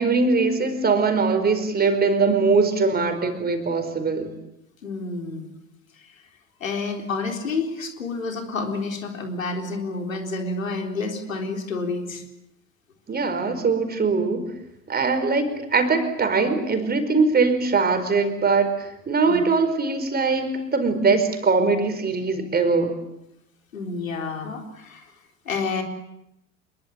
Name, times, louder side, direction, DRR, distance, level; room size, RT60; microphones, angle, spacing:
voice 1, 0.0-4.3 13.1-14.5 14.9-23.0, right 4 dB, 25° right, 8 dB, 5.0 m, -21 dB
voice 2, 4.8-5.5 6.0-6.1 6.6-12.2 19.3-19.4 23.7-25.1 25.5-25.8, left 3 dB, 80° left, 3 dB, 4.0 m, -29 dB
26.0 x 22.5 x 8.4 m, 0.85 s
figure-of-eight pair, 75°, 40 cm